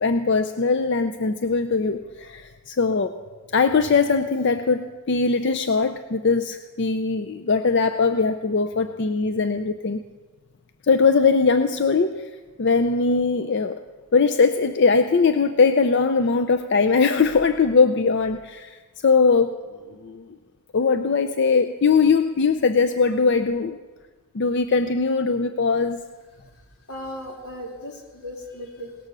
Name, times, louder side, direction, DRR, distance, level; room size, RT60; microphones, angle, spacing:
voice 1, 0.0-3.2 3.5-10.0 10.9-12.3 12.6-13.8 14.1-19.6 20.0-20.3 20.7-23.8 24.3-26.0, left 4 dB, 50° left, 9 dB, 0.5 m, -20 dB
voice 2, 26.9-29.0, left 1 dB, 80° left, 1 dB, 3.0 m, -37 dB
17.5 x 13.0 x 6.1 m, 1.4 s
head